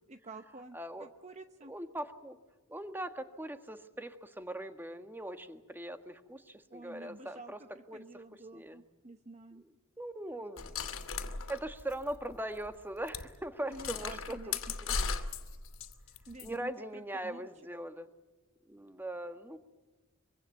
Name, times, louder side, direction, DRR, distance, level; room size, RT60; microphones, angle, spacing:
voice 1, 0.1-1.7 6.7-9.6 13.7-14.6 16.3-17.5, right 2 dB, 35° right, 8 dB, 0.9 m, -50 dB
voice 2, 0.7-1.1 1.7-2.4 2.7-7.6 7.9-8.2 8.5-8.8 10.0-10.7 11.0-11.1 11.5-14.5 14.8-15.0 16.4-18.1 18.7-19.6, right 1 dB, 10° right, 8 dB, 1.6 m, -40 dB
sound 1, 10.6-12.4 12.7-12.8 13.1-13.3 13.7-16.5, left 5 dB, 70° left, 2.5 m, -37 dB
24.5 x 24.0 x 8.0 m, 1.2 s
head